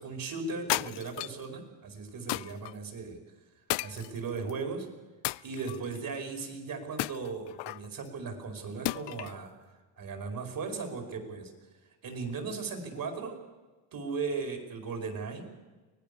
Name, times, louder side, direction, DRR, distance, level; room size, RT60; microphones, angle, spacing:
voice 1, 0.0-3.2 3.8-4.9 5.4-9.5 10.0-11.5 12.0-13.4 13.9-15.5, right 4 dB, 45° right, 5 dB, 5.3 m, -37 dB
Foley Impact Smash Tiles Stereo, 0.7-1.5 2.3-2.7 3.7-4.5 5.2-6.0 7.0-7.9 8.9-9.4, left 20 dB, 60° left, 0.6 m, -34 dB
24.0 x 18.5 x 7.0 m, 1.3 s
cardioid pair, 110°, 48 cm